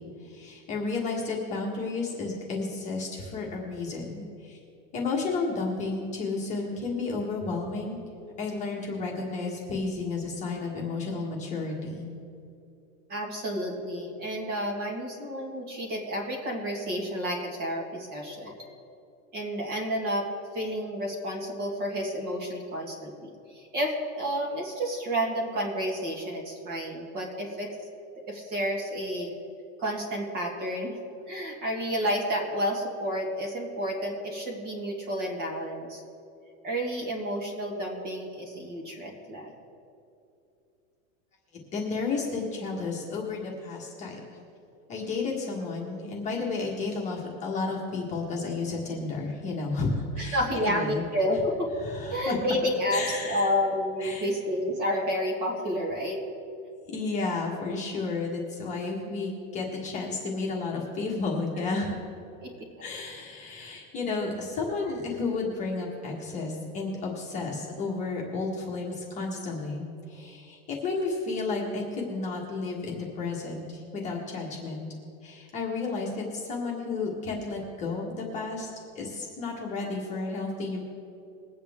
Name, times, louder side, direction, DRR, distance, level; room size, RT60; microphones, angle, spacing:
voice 1, 0.2-4.6 4.9-8.0 8.4-12.0 41.7-44.2 44.9-51.0 51.8-52.4 52.9-53.5 54.0-54.3 56.9-62.0 62.8-74.8 75.2-78.7 78.9-80.8, left 3 dB, 15° left, -3 dB, 1.5 m, -32 dB
voice 2, 13.1-18.5 19.3-20.3 20.5-27.8 28.2-29.3 29.8-31.0 31.3-36.0 36.6-39.5 50.2-51.7 52.1-56.2 62.4-62.5, equal, 25° right, 0 dB, 1.8 m, -30 dB
22.0 x 8.6 x 3.6 m, 2.6 s
supercardioid pair, 180°, 40 cm